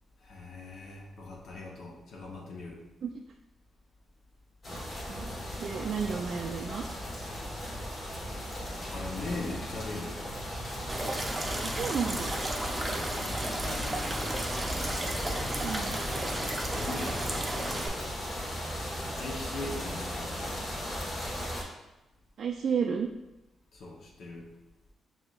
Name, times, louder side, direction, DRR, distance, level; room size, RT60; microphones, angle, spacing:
voice 1, 0.2-2.8 7.2-7.5 8.2-8.4 8.9-10.3 12.8-14.7 16.7-17.6 19.1-20.6 23.7-24.5, left 2 dB, 70° left, -2 dB, 1.0 m, -41 dB
sound 1, 4.6-21.6, equal, 50° left, 1.4 m, -36 dB
voice 2, 5.6-6.8 11.6-12.3 15.6-16.0 22.4-23.1, right 6 dB, 65° right, 2 dB, 0.3 m, -32 dB
sound 2, 10.9-17.9, right 1 dB, 20° right, 0.7 m, -34 dB
6.0 x 2.8 x 2.4 m, 0.96 s
cardioid pair, 80°, 0 cm